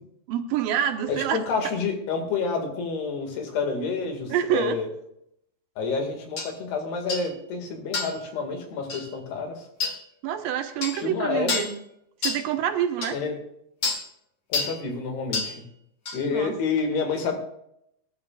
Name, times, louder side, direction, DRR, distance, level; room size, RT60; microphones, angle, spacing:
voice 1, 0.3-1.4 4.3-4.8 10.2-11.8 12.2-13.2 16.3-16.5, right 10 dB, 75° right, 6 dB, 2.4 m, -26 dB
voice 2, 1.1-4.9 5.8-9.7 10.9-11.5 13.1-13.3 14.5-15.6 16.1-17.4, left 4 dB, 90° left, 3 dB, 4.2 m, -28 dB
sound 1, 6.4-6.5 7.1-7.3 7.9-8.2 8.9-9.1 9.8-10.0 10.8-11.0 11.5-11.7 12.2-12.4 13.0-13.1 13.8-14.0 14.5-14.8 15.3-15.5 16.1-16.2, left 4 dB, 60° left, 1.2 m, -28 dB
20.5 x 11.5 x 2.5 m, 0.76 s
omnidirectional pair, 4.5 m